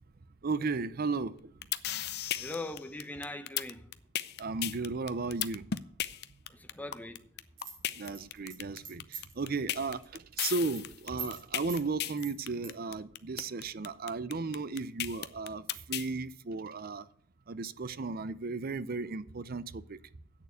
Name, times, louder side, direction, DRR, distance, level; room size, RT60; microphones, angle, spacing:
voice 1, 0.4-1.5 4.4-5.7 8.0-17.1 17.5-20.0, right 3 dB, 50° right, 0.6 m, -35 dB
sound 1, 1.4-16.1, left 11 dB, 60° left, 0.6 m, -35 dB
voice 2, 2.4-3.9 6.5-7.3, left 2 dB, 10° left, 0.9 m, -41 dB
sound 2, 7.6-9.4 9.8-10.0 10.3-10.8 11.2-11.4 11.7-11.8 12.2-12.7, right 6 dB, 70° right, 4.1 m, -43 dB
8.8 x 6.8 x 8.1 m
head